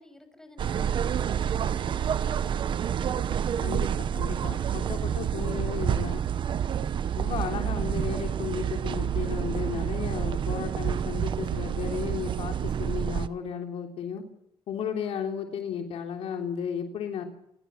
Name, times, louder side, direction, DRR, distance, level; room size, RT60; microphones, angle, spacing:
voice 1, 0.0-3.8 6.7-6.8, left 1 dB, 5° left, 8 dB, 6.6 m, -52 dB
sound 1, 0.6-13.3, right 9 dB, 55° right, 1.0 m, -28 dB
voice 2, 3.6-6.2 7.1-14.2 14.7-17.3, left 7 dB, 75° left, 3 dB, 3.5 m, -34 dB
29.5 x 19.0 x 7.4 m, 0.79 s
cardioid pair, 120°, 10 cm